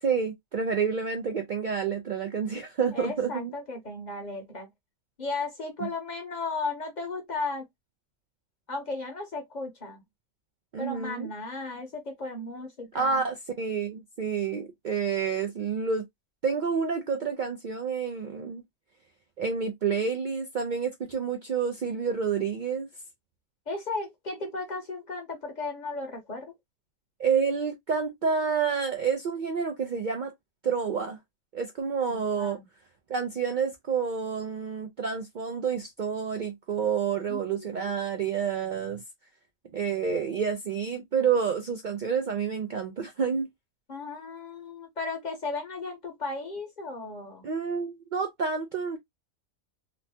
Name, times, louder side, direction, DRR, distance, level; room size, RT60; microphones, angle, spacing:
voice 1, 0.0-3.5 10.7-11.3 12.9-16.0 16.4-18.6 19.4-22.9 27.2-30.3 30.6-31.2 31.5-32.6 33.1-39.0 39.7-43.5 47.4-49.0, right 6 dB, 90° right, 0.4 m, -29 dB
voice 2, 2.9-4.7 5.2-7.7 8.7-10.0 10.8-13.2 23.7-26.5 32.1-32.7 37.3-38.0 43.9-47.5, left 3 dB, 40° left, 0.7 m, -35 dB
3.0 x 2.1 x 2.7 m
omnidirectional pair, 1.4 m